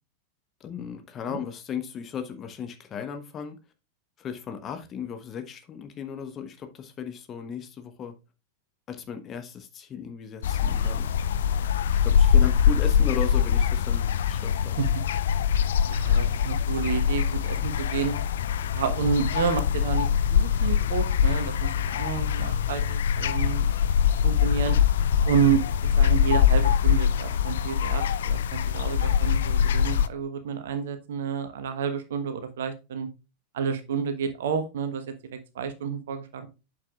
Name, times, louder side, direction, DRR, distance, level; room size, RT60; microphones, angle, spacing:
voice 1, 0.6-3.5 4.2-8.1 8.9-11.1 11.9-14.8, left 7 dB, 25° left, 1.2 m, -36 dB
sound 1, 10.4-30.1, left 8 dB, 60° left, 0.4 m, -23 dB
voice 2, 15.9-18.1 18.7-23.7 24.2-24.8 25.2-25.6 26.0-33.1 33.5-36.5, right 7 dB, 60° right, 1.2 m, -29 dB
8.7 x 6.7 x 2.4 m
figure-of-eight pair, 90°, 0 cm